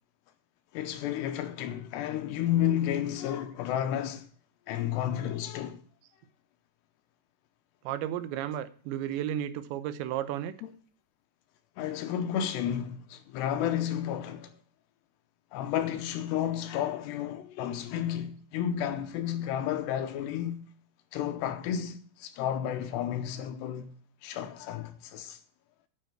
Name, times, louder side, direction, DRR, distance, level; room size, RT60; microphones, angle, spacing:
voice 1, 0.7-4.3 4.7-5.8 10.6-10.7 11.8-14.5 15.5-20.6 21.1-23.9 24.2-25.4, left 10 dB, 80° left, 2.8 m, -31 dB
voice 2, 7.9-10.5, right 11 dB, 80° right, 3.0 m, -33 dB
9.4 x 6.8 x 7.8 m
omnidirectional pair, 5.2 m